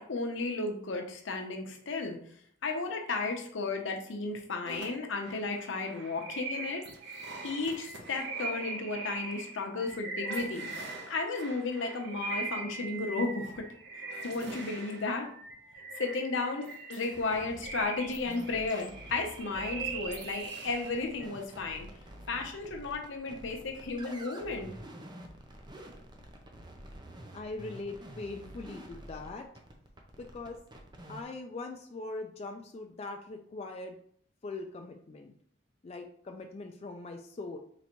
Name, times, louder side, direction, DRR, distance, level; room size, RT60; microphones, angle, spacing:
voice 1, 0.0-2.2 2.6-6.8 7.4-10.7 11.1-13.6 13.9-15.3 16.0-21.9 22.3-24.7, left 3 dB, 80° left, 3 dB, 0.7 m, -34 dB
sound 1, 4.7-21.3, right 3 dB, 60° right, 0.8 m, -41 dB
sound 2, 17.1-31.3, right 1 dB, 25° right, 0.6 m, -48 dB
voice 2, 27.3-29.5 30.2-30.6 31.1-34.0 34.4-35.3 35.8-37.6, left 3 dB, 35° left, 3 dB, 0.3 m, -41 dB
4.0 x 3.3 x 3.0 m, 0.63 s
head